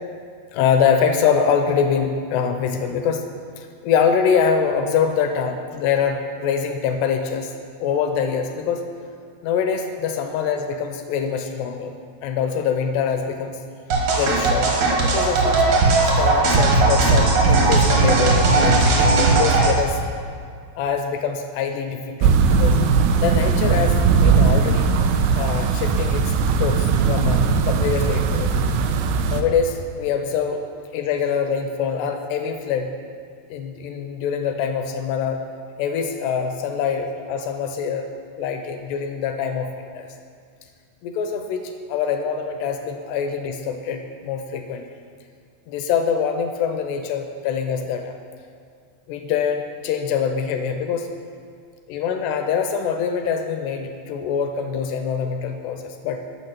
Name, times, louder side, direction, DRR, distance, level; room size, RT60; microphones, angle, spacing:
voice 1, 0.5-3.3 3.6-7.5 7.8-8.8 9.4-11.9 12.2-13.6 14.1-15.7 16.0-20.0 20.8-22.8 23.2-24.9 25.4-26.3 26.6-28.5 29.3-30.6 30.9-32.9 33.5-35.4 35.8-38.1 38.4-40.1 41.0-44.9 45.7-48.1 49.1-51.1 51.9-56.2, left 6 dB, 80° left, 6 dB, 2.5 m, -24 dB
sound 1, 13.9-19.7, right 3 dB, 65° right, 1.9 m, -17 dB
sound 2, 22.2-29.4, right 5 dB, 90° right, 3.0 m, -19 dB
10.5 x 6.8 x 5.8 m, 2.2 s
omnidirectional pair, 5.3 m